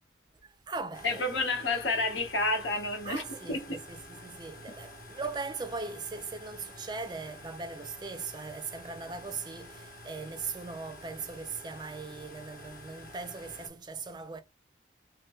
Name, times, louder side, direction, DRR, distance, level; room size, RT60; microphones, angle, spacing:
voice 1, 0.4-1.5 3.0-14.4, right 4 dB, 20° right, 0.4 m, -39 dB
sound 1, 0.9-13.7, left 1 dB, 50° left, 0.8 m, -49 dB
voice 2, 1.0-3.2 3.5-3.8, left 2 dB, 80° left, 1.1 m, -30 dB
2.6 x 2.1 x 3.6 m
head